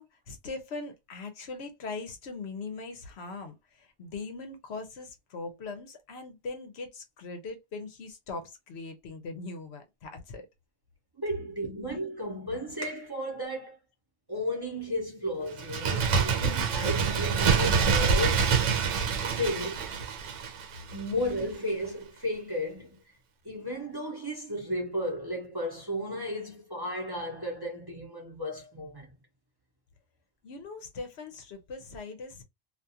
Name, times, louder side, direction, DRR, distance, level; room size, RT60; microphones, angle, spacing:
voice 1, 0.0-10.5 30.4-32.4, left 3 dB, 70° left, 0.9 m, -40 dB
voice 2, 11.2-13.7 14.3-18.5 19.3-19.9 20.9-23.0 23.4-29.1, equal, 25° right, 0.8 m, -34 dB
Bird, 15.5-21.1 21.4-21.5, right 5 dB, 90° right, 0.9 m, -26 dB
2.5 x 2.3 x 2.7 m
omnidirectional pair, 1.2 m